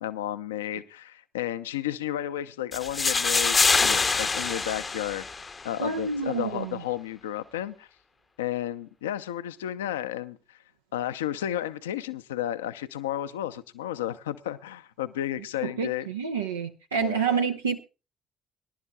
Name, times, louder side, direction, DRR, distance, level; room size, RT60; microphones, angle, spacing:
voice 1, 0.0-5.3 5.6-7.9 8.4-10.6 10.9-16.1 17.0-17.2, left 12 dB, 75° left, 12 dB, 0.6 m, -32 dB
sound 1, 2.7-5.7, left 4 dB, 30° left, 0.7 m, -25 dB
voice 2, 5.8-6.8 15.6-17.8, right 5 dB, 80° right, 4 dB, 0.6 m, -28 dB
23.5 x 11.5 x 2.3 m, 0.30 s
figure-of-eight pair, 45°, 0 cm